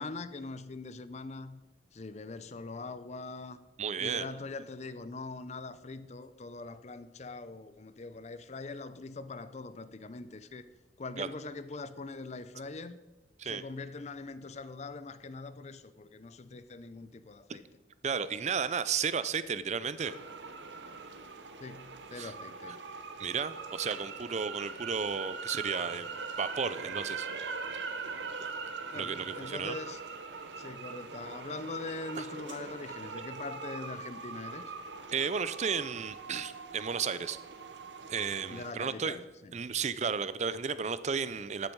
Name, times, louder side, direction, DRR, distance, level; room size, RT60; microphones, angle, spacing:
voice 1, 0.0-1.6 1.9-3.6 4.0-10.6 11.0-13.0 13.4-17.6 21.6-22.8 28.9-30.0 30.6-34.7 38.5-39.5, left 3 dB, 40° left, 0.6 m, -42 dB
voice 2, 3.8-4.3 11.2-11.3 13.4-13.6 18.0-20.1 22.2-22.3 23.2-27.3 28.9-29.8 32.2-32.3 35.1-37.4 38.1-39.2 39.5-41.7, right 6 dB, 40° right, 0.5 m, -33 dB
sound 1, 20.0-38.7, right 4 dB, 85° right, 1.0 m, -42 dB
13.0 x 9.0 x 4.6 m
head